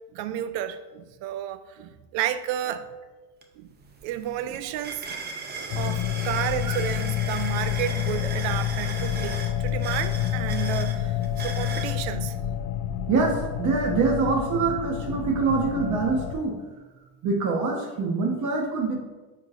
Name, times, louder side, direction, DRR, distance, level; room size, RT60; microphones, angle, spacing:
voice 1, 0.1-2.9 3.6-3.7 4.0-5.1 5.8-12.4, right 11 dB, 75° right, 0.6 m, -31 dB
sound 1, 3.4-3.5 3.8-12.0, right 4 dB, 25° right, 0.6 m, -37 dB
sound 2, 5.7-16.4, left 11 dB, 60° left, 0.5 m, -29 dB
voice 2, 13.1-16.6 17.2-19.0, right 4 dB, 45° right, 1.2 m, -25 dB
9.3 x 4.8 x 2.5 m
cardioid pair, 145°, 45 cm